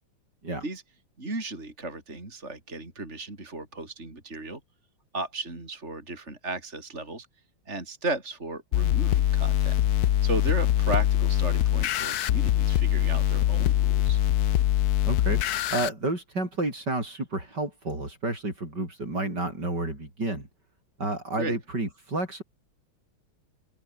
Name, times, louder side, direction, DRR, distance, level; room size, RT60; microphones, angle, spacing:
voice 1, 1.2-4.6 5.1-7.3 7.7-9.8 10.2-14.2 21.4-21.6, right 2 dB, 30° right, 5.1 m, -35 dB
sound 1, 8.7-15.9, left 12 dB, 65° left, 1.0 m, -23 dB
voice 2, 15.0-20.5 21.0-22.4, right 2 dB, 50° right, 7.9 m, -30 dB
open air
omnidirectional pair, 2.3 m